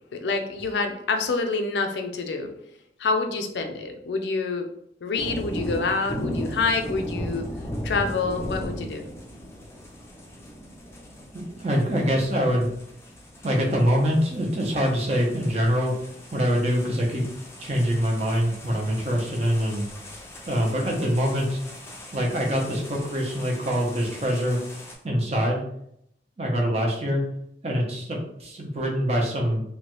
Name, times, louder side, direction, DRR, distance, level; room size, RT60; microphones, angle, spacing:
voice 1, 0.1-2.5 3.0-4.7 5.0-7.4 7.8-9.1, left 4 dB, 75° left, 5 dB, 0.4 m, -27 dB
sound 1, 5.2-24.9, equal, 15° left, 0.5 m, -38 dB
voice 2, 11.3-12.7 13.4-17.2 17.6-19.9 20.5-21.6 22.1-24.6 25.0-25.6 26.4-27.2 27.6-29.6, equal, 35° right, -1 dB, 0.6 m, -24 dB
2.9 x 2.2 x 2.9 m, 0.74 s
head